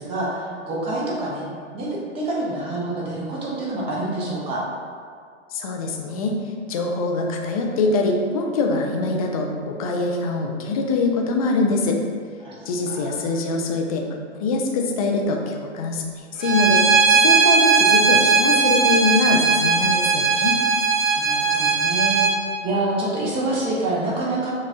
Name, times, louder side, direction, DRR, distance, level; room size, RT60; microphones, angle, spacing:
voice 1, 0.0-1.4 1.7-4.6 12.4-13.3 21.1-22.2 22.6-24.5, right 2 dB, 15° right, -5 dB, 0.7 m, -27 dB
voice 2, 5.5-6.3 6.7-12.0 12.7-14.1 14.3-20.6, left 3 dB, 30° left, 1 dB, 0.4 m, -23 dB
Bowed string instrument, 16.4-22.3, right 5 dB, 90° right, 0.8 m, -18 dB
5.4 x 2.3 x 2.7 m, 2.1 s
figure-of-eight pair, 115°, 38 cm